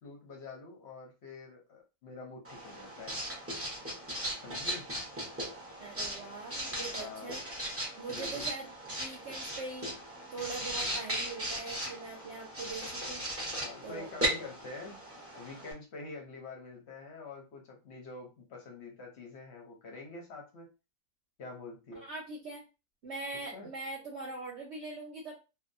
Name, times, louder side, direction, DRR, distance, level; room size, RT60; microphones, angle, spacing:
voice 1, 0.0-3.2 4.4-4.9 7.0-7.4 8.1-8.5 13.6-15.0 15.3-20.7 21.4-22.1 23.3-23.7, left 3 dB, 55° left, 1 dB, 0.7 m, -46 dB
Writing, 2.4-15.7, right 1 dB, 15° right, 0.4 m, -38 dB
voice 2, 5.8-7.4 8.0-9.9 10.3-13.3 13.8-14.1 21.9-22.6 23.0-25.3, right 3 dB, 55° right, -3 dB, 0.8 m, -42 dB
2.7 x 2.2 x 2.6 m, 0.30 s
omnidirectional pair, 1.8 m